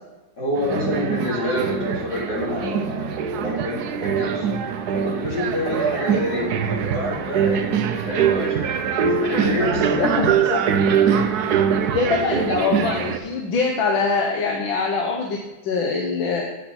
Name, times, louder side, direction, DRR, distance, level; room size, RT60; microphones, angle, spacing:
voice 1, 0.4-4.5 4.9-10.5 11.1-11.4 11.7-12.2, left 1 dB, 55° left, -7 dB, 4.7 m, -28 dB
sound 1, 0.6-13.2, right 7 dB, 65° right, 1.0 m, -23 dB
voice 2, 9.7-10.7 11.9-16.4, left 4 dB, 80° left, 0 dB, 1.8 m, -23 dB
9.8 x 8.2 x 4.4 m, 1.1 s
omnidirectional pair, 2.1 m